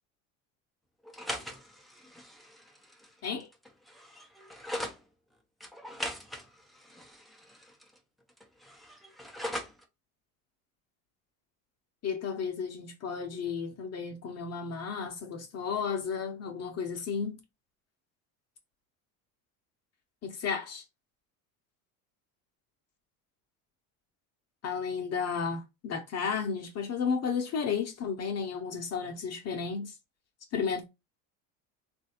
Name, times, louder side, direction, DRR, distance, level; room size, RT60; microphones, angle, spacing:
sound 1, 1.0-5.0 5.6-8.0 8.3-9.8, equal, ahead, 0.4 m, -41 dB
voice 1, 12.0-17.4 20.2-20.8 24.6-29.9 30.5-30.8, left 6 dB, 35° left, 0.7 m, -33 dB
3.1 x 2.5 x 2.8 m
supercardioid pair, 95°, 42 cm